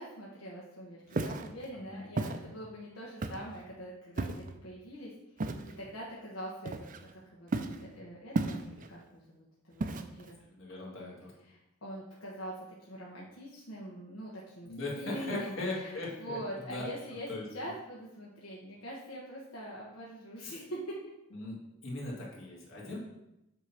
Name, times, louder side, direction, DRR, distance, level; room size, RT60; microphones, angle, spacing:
voice 1, 0.0-5.5 5.8-10.4 11.5-15.9 16.2-21.0, equal, 85° left, -5 dB, 1.2 m, -44 dB
Walk footsteps, 1.1-1.5 2.2-2.4 3.2-3.6 4.2-4.5 5.4-5.7 6.7-7.1 7.5-7.8 8.4-8.9 9.8-10.3, right 3 dB, 40° right, 0.5 m, -33 dB
voice 2, 1.7-2.0 10.4-11.3 14.7-16.9 17.3-17.5 21.3-23.0, left 2 dB, 65° left, -4 dB, 2.2 m, -39 dB
8.0 x 3.0 x 5.6 m, 0.88 s
head